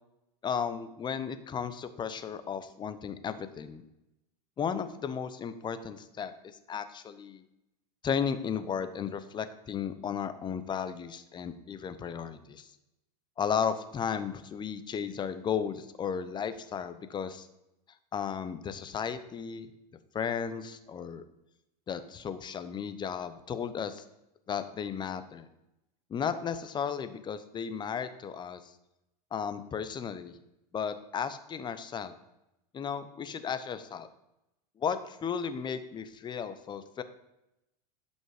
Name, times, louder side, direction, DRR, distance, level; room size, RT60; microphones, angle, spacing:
voice 1, 0.4-3.8 4.6-6.3 6.7-7.4 8.0-12.7 13.4-17.5 18.1-19.7 20.1-21.2 21.9-24.0 24.5-25.5 26.1-28.7 29.3-30.4 30.7-32.1 32.7-34.1 34.8-37.0, left 7 dB, 20° left, 11 dB, 0.8 m, -34 dB
11.5 x 5.4 x 4.9 m, 0.88 s
supercardioid pair, 120°, 21 cm